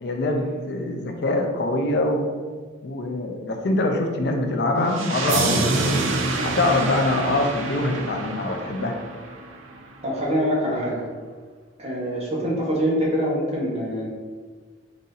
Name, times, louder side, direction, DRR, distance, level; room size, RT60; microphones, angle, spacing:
voice 1, 0.0-2.2 2.8-6.0 6.4-8.9, left 2 dB, 55° left, 3 dB, 0.4 m, -24 dB
sound 1, 4.9-9.8, right 2 dB, 80° right, 0.6 m, -26 dB
voice 2, 10.0-11.0 11.8-14.1, equal, 30° right, -5 dB, 1.1 m, -24 dB
4.1 x 2.6 x 3.9 m, 1.5 s
head